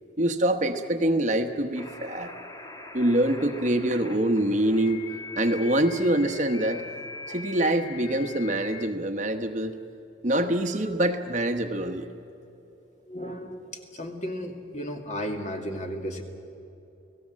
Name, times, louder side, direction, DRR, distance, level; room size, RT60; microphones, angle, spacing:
voice 1, 0.2-2.3 2.9-5.0 5.3-6.8 7.3-9.7 10.2-12.0, right 1 dB, 40° right, 6 dB, 1.1 m, -25 dB
sound 1, 1.7-8.9, left 3 dB, 20° left, 1.3 m, -42 dB
voice 2, 13.1-13.6 13.9-16.2, equal, 40° left, 4 dB, 2.2 m, -34 dB
29.5 x 18.0 x 7.5 m, 2.9 s
head